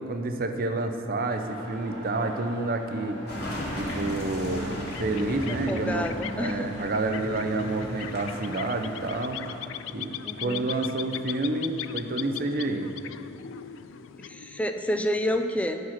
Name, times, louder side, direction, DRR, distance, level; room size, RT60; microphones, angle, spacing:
voice 1, 0.0-3.2 3.8-6.1 6.4-9.4 9.9-12.9, right 2 dB, 50° right, 6 dB, 0.6 m, -29 dB
sound 1, 1.3-6.5, right 1 dB, 65° right, 1.5 m, -44 dB
Car passing by / Engine, 3.3-9.8, left 1 dB, 55° left, 2.1 m, -36 dB
sound 2, 4.7-15.0, left 10 dB, 85° left, 0.3 m, -40 dB
voice 2, 5.5-6.8 10.2-10.7 14.2-15.8, equal, 5° left, 6 dB, 0.4 m, -29 dB
13.5 x 4.8 x 5.9 m, 2.9 s
head